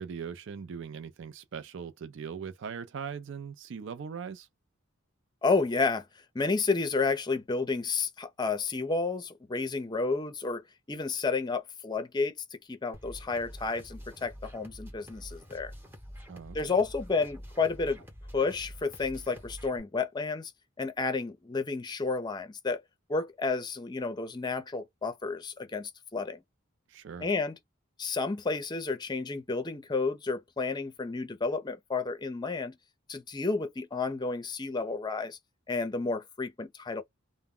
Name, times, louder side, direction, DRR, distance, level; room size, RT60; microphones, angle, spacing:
voice 1, 0.0-4.5 16.3-16.7 26.9-27.3, right 6 dB, 60° right, 0.4 m, -40 dB
voice 2, 5.4-6.0 6.3-10.6 10.9-12.4 12.7-15.7 16.5-18.0 18.3-20.5 20.8-22.8 23.1-26.4 27.2-27.6 28.0-32.7 33.1-35.4 35.7-37.0, left 4 dB, 20° left, 0.5 m, -31 dB
sound 1, 12.9-19.8, equal, 10° right, 0.8 m, -47 dB
2.1 x 2.0 x 3.6 m
head